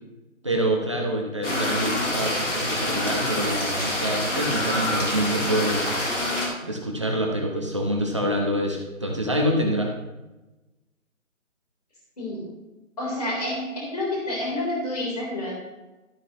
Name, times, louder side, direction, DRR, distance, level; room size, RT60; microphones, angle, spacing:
voice 1, 0.4-5.9 6.6-9.9, right 1 dB, 20° right, 0 dB, 0.9 m, -26 dB
sound 1, 1.4-6.5, left 1 dB, 60° left, 3.3 m, -26 dB
voice 2, 13.0-15.5, left 1 dB, 30° left, -4 dB, 3.6 m, -29 dB
12.5 x 9.6 x 3.0 m, 1.1 s
figure-of-eight pair, 165°, 42 cm